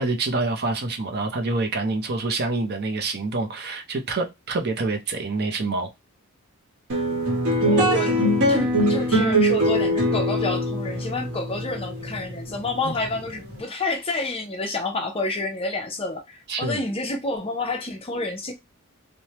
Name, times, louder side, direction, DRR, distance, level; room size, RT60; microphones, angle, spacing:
voice 1, 0.0-5.9 12.8-12.9 16.5-16.8, right 3 dB, 50° right, 0.6 m, -26 dB
sound 1, 6.9-13.5, equal, 80° right, 1.1 m, -22 dB
voice 2, 7.6-8.2 8.5-18.5, left 3 dB, 25° left, 0.6 m, -29 dB
3.1 x 2.1 x 2.8 m
head